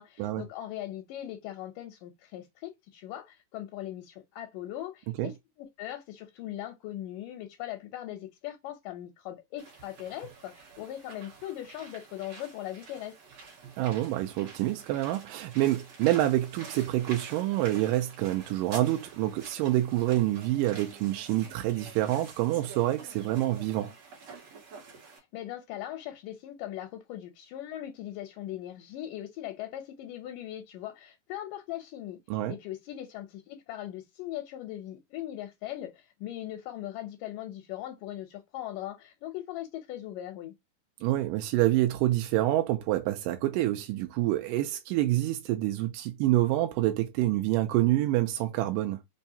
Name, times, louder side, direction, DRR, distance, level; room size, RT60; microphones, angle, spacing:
voice 1, 0.0-5.3 5.6-13.2 25.1-32.2 32.5-40.6, left 13 dB, 80° left, 2.1 m, -40 dB
sound 1, 9.6-25.2, right 4 dB, 60° right, 2.1 m, -48 dB
voice 2, 13.8-23.9 32.3-32.6 41.0-49.0, right 15 dB, 80° right, 2.1 m, -27 dB
5.4 x 2.4 x 2.7 m
omnidirectional pair, 4.0 m